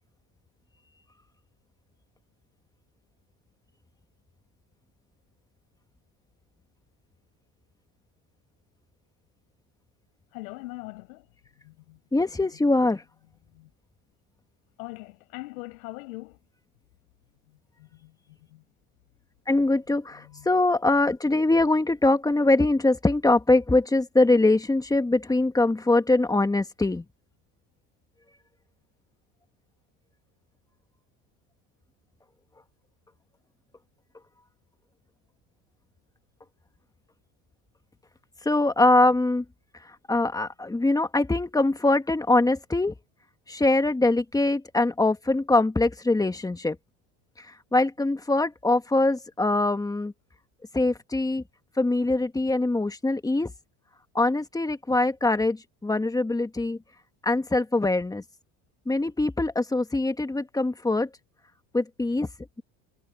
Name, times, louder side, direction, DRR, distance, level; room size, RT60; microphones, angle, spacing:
voice 1, 10.3-11.3 11.6-12.0 13.5-13.7 14.8-16.4 17.5-18.6 20.2-20.5, left 21 dB, 85° left, 5.8 m, -42 dB
voice 2, 12.1-13.0 19.5-27.1 38.5-39.5 39.9-42.9 43.5-46.8 47.4-50.1 50.7-51.4 51.8-53.5 54.2-56.8 57.2-58.2 58.9-61.1 61.7-62.3, left 2 dB, 10° left, 1.7 m, -23 dB
supercardioid pair, 115°, 41 cm